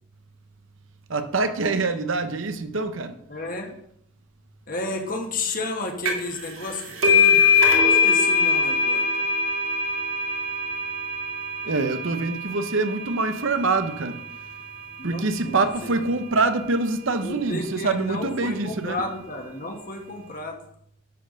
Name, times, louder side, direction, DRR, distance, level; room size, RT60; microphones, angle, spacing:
voice 1, 1.1-3.1 11.6-14.2 15.0-19.0, right 3 dB, 70° right, 0.9 m, -25 dB
voice 2, 3.3-3.8 4.7-7.4 7.8-9.1 15.0-15.7 16.0-16.1 17.2-20.6, left 2 dB, 40° left, 1.5 m, -32 dB
sound 1, 6.1-6.4 6.6-13.9, left 4 dB, 85° right, 2.1 m, -22 dB
11.0 x 4.5 x 6.5 m
head